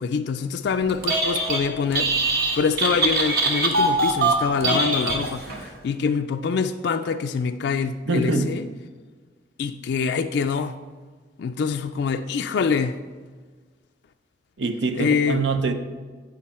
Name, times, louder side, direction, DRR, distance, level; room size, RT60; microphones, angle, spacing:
voice 1, 0.0-8.6 9.6-10.8 11.4-13.0 15.0-15.4, left 5 dB, 65° left, 0.3 m, -25 dB
Telephone, 0.9-1.6 1.9-5.6, right 2 dB, 60° right, 1.3 m, -22 dB
voice 2, 8.1-8.6 14.6-15.7, right 3 dB, 80° right, 0.7 m, -24 dB
8.6 x 7.4 x 4.3 m
head